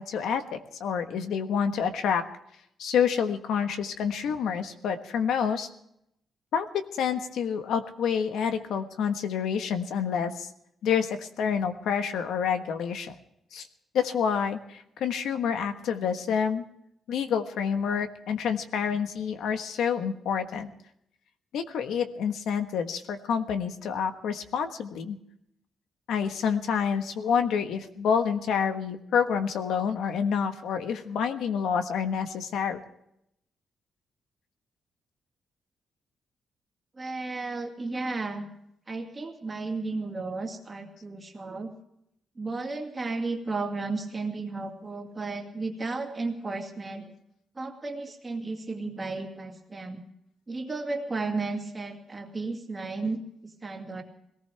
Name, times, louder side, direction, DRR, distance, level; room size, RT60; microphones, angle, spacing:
voice 1, 0.0-2.2 2.8-5.7 6.5-10.5 10.8-13.1 13.5-13.7 13.9-16.6 17.1-20.7 21.5-25.2 26.1-32.8, left 7 dB, 85° left, 7 dB, 1.4 m, -28 dB
voice 2, 37.0-38.5 38.9-41.7 42.4-47.1 47.6-50.0 50.5-53.2 53.6-54.0, right 3 dB, 20° right, 2 dB, 2.1 m, -33 dB
22.0 x 18.0 x 3.5 m, 0.77 s
wide cardioid pair, 175°, 0 cm